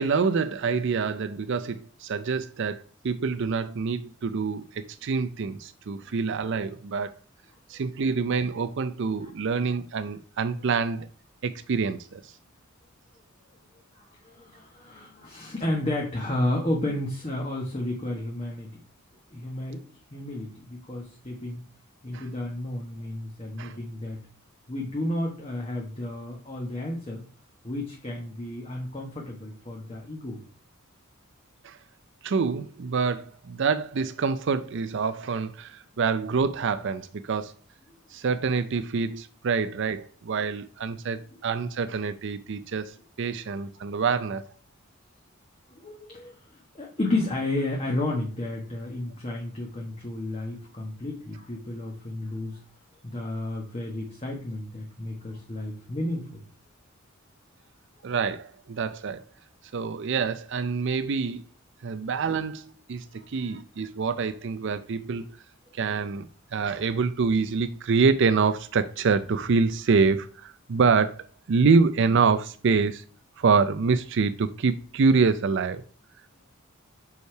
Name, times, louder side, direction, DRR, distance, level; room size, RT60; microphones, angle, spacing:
voice 1, 0.0-7.1 7.7-11.1 11.4-12.3 22.1-22.2 23.6-23.8 31.6-31.8 32.2-37.5 38.1-44.5 58.0-59.2 59.7-61.4 61.8-65.3 65.7-73.0 73.4-75.8, right 5 dB, 60° right, 0.5 m, -26 dB
voice 2, 13.9-18.8 19.3-19.8 20.1-21.6 22.0-24.2 24.7-27.2 27.6-30.4 45.7-46.4 46.7-52.6 53.0-56.4 63.1-63.2, left 1 dB, 30° left, 1.2 m, -32 dB
6.5 x 5.5 x 4.5 m
head